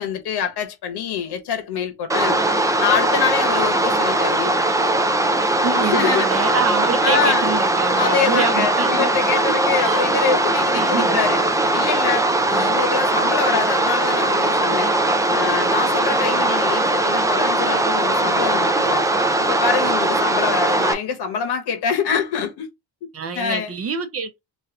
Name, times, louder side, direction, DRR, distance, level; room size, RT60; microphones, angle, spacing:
voice 1, 0.0-2.4 2.8-4.5 5.8-6.3 7.0-7.6 7.8-11.4 11.7-14.9 15.3-19.0 19.4-22.7 23.0-23.1 23.3-23.8, left 7 dB, 75° left, 1.3 m, -25 dB
sound 1, 2.1-20.9, right 2 dB, 10° right, 0.3 m, -20 dB
voice 2, 5.6-10.0 10.7-11.2 12.5-12.8 23.1-24.4, right 5 dB, 40° right, 0.7 m, -27 dB
3.2 x 2.6 x 3.8 m
cardioid pair, 165°, 39 cm